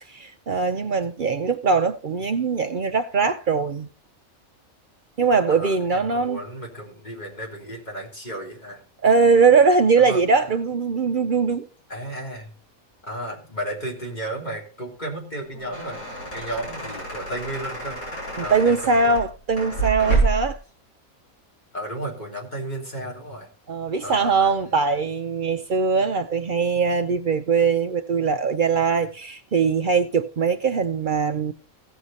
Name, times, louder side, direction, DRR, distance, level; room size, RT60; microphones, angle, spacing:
voice 1, 0.1-3.9 5.2-6.4 9.0-11.7 18.4-20.6 23.7-31.5, right 5 dB, 55° right, 0.6 m, -21 dB
voice 2, 5.5-8.8 10.0-10.2 11.9-12.5 13.1-16.0 16.3-18.0 18.4-19.2 21.7-23.5 24.0-24.7, right 1 dB, 30° left, 3.1 m, -33 dB
sound 1, 15.4-20.6, right 3 dB, 90° left, 5.7 m, -28 dB
16.0 x 6.6 x 4.1 m
omnidirectional pair, 1.5 m